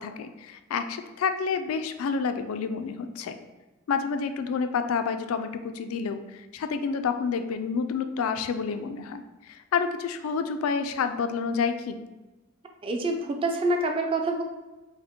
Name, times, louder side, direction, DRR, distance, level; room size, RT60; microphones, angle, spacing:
voice 1, 0.0-3.4 3.9-12.0, left 5 dB, 80° left, 8 dB, 0.3 m, -29 dB
voice 2, 12.8-14.4, right 2 dB, 25° right, 3 dB, 0.4 m, -26 dB
5.0 x 2.1 x 3.6 m, 1.1 s
head